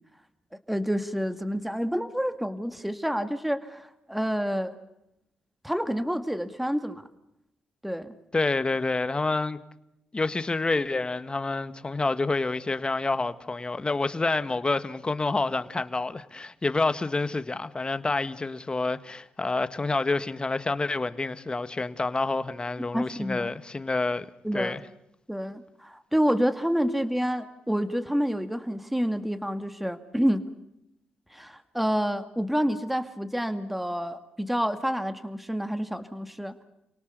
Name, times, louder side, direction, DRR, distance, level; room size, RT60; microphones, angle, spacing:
voice 1, 0.7-4.7 5.6-7.0 7.8-8.1 22.9-23.5 24.4-24.8 25.3-30.4 31.3-36.6, equal, 5° right, 2.2 m, -28 dB
voice 2, 8.3-9.6 10.1-24.3 24.5-24.8, left 3 dB, 30° left, 1.6 m, -28 dB
30.0 x 18.5 x 6.8 m
cardioid pair, 60°, 3 cm